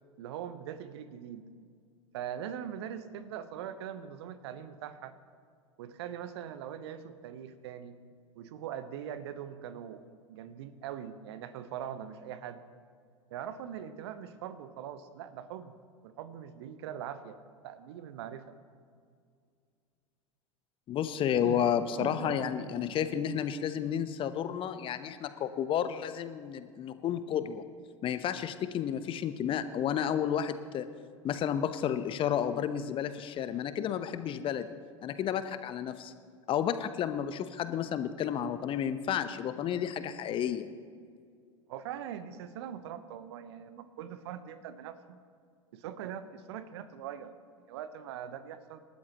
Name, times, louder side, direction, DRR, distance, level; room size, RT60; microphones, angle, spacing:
voice 1, 0.2-1.4 2.1-5.1 5.8-8.0 8.3-12.6 13.3-15.7 16.0-17.4 17.6-18.5 21.3-23.4 41.7-45.2 45.7-47.3 47.7-48.8, right 9 dB, 60° right, 12 dB, 1.0 m, -42 dB
voice 2, 20.9-27.7 28.0-30.9 31.2-34.7 35.0-36.1 36.5-40.7, left 9 dB, 35° left, 11 dB, 0.9 m, -31 dB
28.0 x 13.0 x 3.0 m, 2.2 s
figure-of-eight pair, 85°, 16 cm